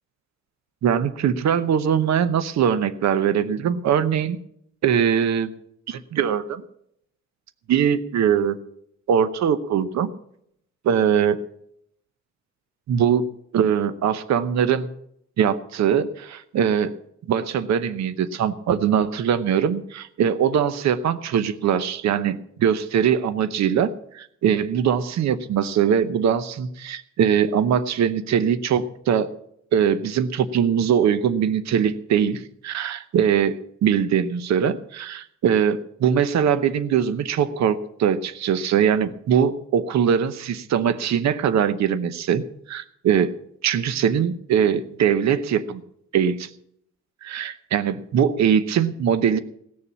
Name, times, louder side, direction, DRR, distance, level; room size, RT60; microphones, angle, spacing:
voice 1, 0.8-4.4 4.8-5.5 5.9-6.6 7.7-8.6 9.1-10.1 10.8-11.4 12.9-13.2 13.5-14.9 15.4-16.9 17.3-29.3 29.7-43.3 43.6-45.8 46.1-46.5 47.2-49.4, right 8 dB, 65° right, 12 dB, 0.9 m, -21 dB
17.0 x 6.9 x 7.3 m, 0.71 s
cardioid pair, 150°, 30 cm